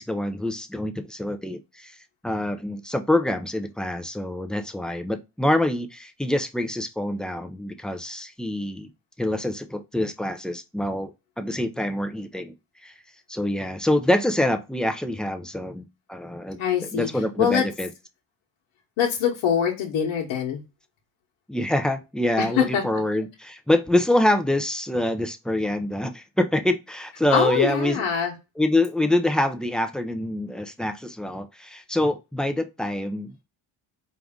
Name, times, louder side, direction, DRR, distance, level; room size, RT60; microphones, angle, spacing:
voice 1, 0.0-2.0 2.2-8.9 9.2-12.5 12.8-12.9 13.3-17.9 21.5-28.0 28.6-33.4, left 1 dB, ahead, 0.3 m, -25 dB
voice 2, 16.6-17.1 17.4-17.6 19.0-20.6 22.4-22.8 27.3-28.3, left 8 dB, 85° left, 1.1 m, -23 dB
4.7 x 2.6 x 3.5 m
cardioid pair, 110°, 46 cm